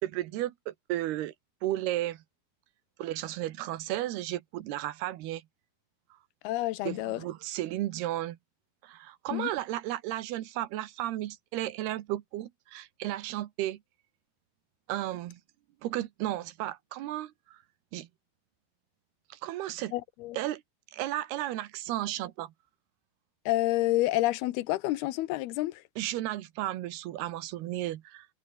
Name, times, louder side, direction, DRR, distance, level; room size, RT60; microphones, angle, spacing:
voice 1, 0.0-1.3 1.6-2.2 3.0-5.4 6.8-8.4 8.8-13.8 14.9-15.4 15.8-17.6 17.9-18.1 19.3-19.9 20.3-20.6 20.9-22.5 26.0-28.3, right 14 dB, 90° right, 3.3 m, -34 dB
voice 2, 6.4-7.2 9.3-9.5 19.9-20.4 23.5-25.8, left 17 dB, 85° left, 2.9 m, -29 dB
omnidirectional pair, 4.4 m